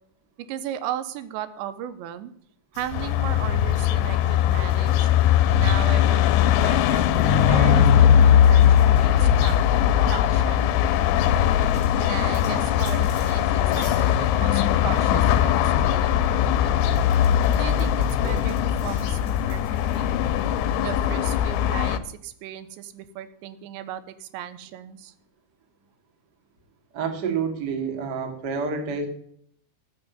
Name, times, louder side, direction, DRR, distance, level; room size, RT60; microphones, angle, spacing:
voice 1, 0.4-2.3 2.7-5.1 5.4-9.6 10.1-10.7 12.0-17.0 17.5-19.6 19.9-20.4 20.8-25.1, right 11 dB, 90° right, 12 dB, 3.0 m, -36 dB
sound 1, 2.7-20.1, left 4 dB, 25° left, 3.3 m, -41 dB
sound 2, 2.9-22.0, left 10 dB, 85° left, 3.0 m, -20 dB
voice 2, 26.9-29.1, right 5 dB, 40° right, 4 dB, 1.4 m, -28 dB
14.5 x 7.0 x 6.8 m, 0.64 s
omnidirectional pair, 5.2 m